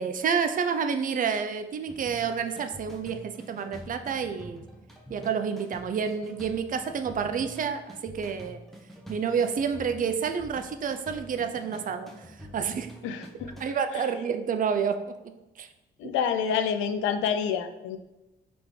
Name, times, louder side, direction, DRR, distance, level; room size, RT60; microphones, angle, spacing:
voice 1, 0.0-4.7 5.1-8.6 9.1-12.9 13.6-15.0 15.6-15.7 16.0-16.1, right 6 dB, 45° right, 8 dB, 0.4 m, -29 dB
sound 1, 1.9-13.7, equal, ahead, 0.7 m, -46 dB
voice 2, 13.0-13.5 13.9-14.0 16.0-18.0, left 7 dB, 85° left, 10 dB, 0.4 m, -28 dB
3.9 x 3.4 x 3.2 m, 0.98 s
cardioid pair, 90°, 20 cm